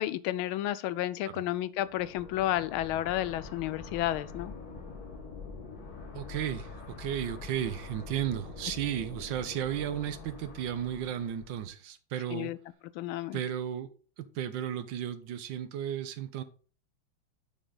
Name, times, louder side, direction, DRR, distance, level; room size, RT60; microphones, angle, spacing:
voice 1, 0.0-4.5 12.3-12.6 13.0-13.4, left 13 dB, 85° left, 1.4 m, -31 dB
sound 1, 1.8-11.6, left 4 dB, 50° left, 1.8 m, -45 dB
voice 2, 6.1-6.7 7.0-12.5 13.3-13.9 14.2-16.4, right 10 dB, 70° right, 1.3 m, -34 dB
8.0 x 6.4 x 3.9 m
omnidirectional pair, 2.2 m